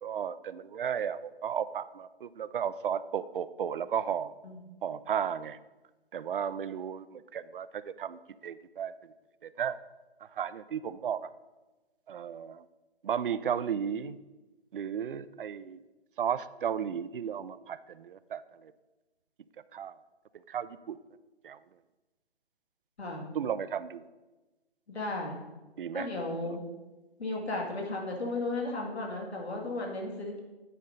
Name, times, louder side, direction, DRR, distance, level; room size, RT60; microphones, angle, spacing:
voice 1, 0.0-4.3 4.8-5.6 6.1-8.9 9.4-9.7 10.2-11.3 12.1-12.6 13.0-14.2 14.7-15.8 16.2-18.7 19.7-20.0 20.5-21.0 21.4-21.6 23.3-24.1 25.8-26.1, right 8 dB, 55° right, 15 dB, 0.4 m, -34 dB
voice 2, 23.0-23.3 24.9-25.4 25.9-26.6 27.2-30.4, left 2 dB, 75° left, -1 dB, 2.1 m, -34 dB
9.2 x 3.6 x 5.4 m, 1.1 s
figure-of-eight pair, 140°, 32 cm